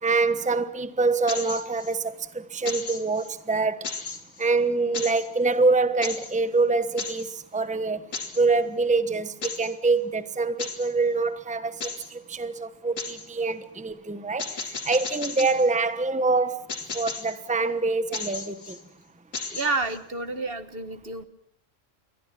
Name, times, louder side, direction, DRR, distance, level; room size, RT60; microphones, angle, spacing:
voice 1, 0.0-3.9 4.4-8.1 8.4-16.6 16.9-18.8, right 3 dB, 5° right, 1.1 m, -25 dB
sound 1, 1.3-1.9 2.7-3.3 3.8-4.5 4.9-5.3 6.0-6.4 7.0-7.3 8.1-8.5 9.4-9.7 10.6-10.9 11.8-12.1 13.0-13.3 14.4-15.7 16.7-17.4 18.1-18.8 19.3-20.0, left 4 dB, 85° left, 2.9 m, -35 dB
voice 2, 19.5-21.2, right 3 dB, 50° right, 1.7 m, -29 dB
28.5 x 23.0 x 6.0 m
omnidirectional pair, 1.3 m